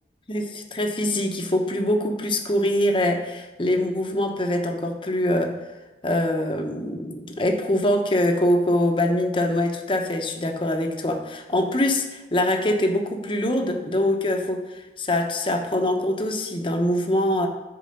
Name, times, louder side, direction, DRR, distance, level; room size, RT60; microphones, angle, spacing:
voice 1, 0.3-5.6 6.0-17.5, left 1 dB, 30° left, 4 dB, 0.8 m, -24 dB
6.7 x 4.8 x 6.5 m, 1.1 s
head